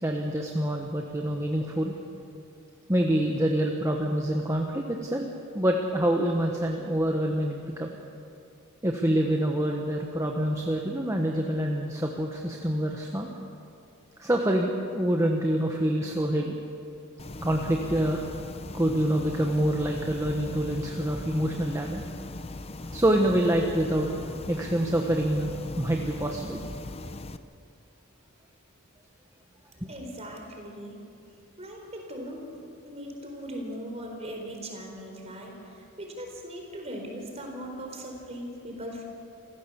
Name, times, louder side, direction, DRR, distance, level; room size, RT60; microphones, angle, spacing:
voice 1, 0.0-1.9 2.9-5.3 5.5-7.9 8.8-13.3 14.2-16.6 17.4-18.2 18.7-22.0 22.9-25.5 25.8-26.6, right 1 dB, 15° right, 1 dB, 1.3 m, -26 dB
sound 1, 17.2-27.4, left 2 dB, 25° left, 0.7 m, -39 dB
voice 2, 29.9-31.0 31.6-39.0, equal, 30° right, 2 dB, 4.1 m, -39 dB
28.0 x 15.5 x 7.1 m, 2.6 s
head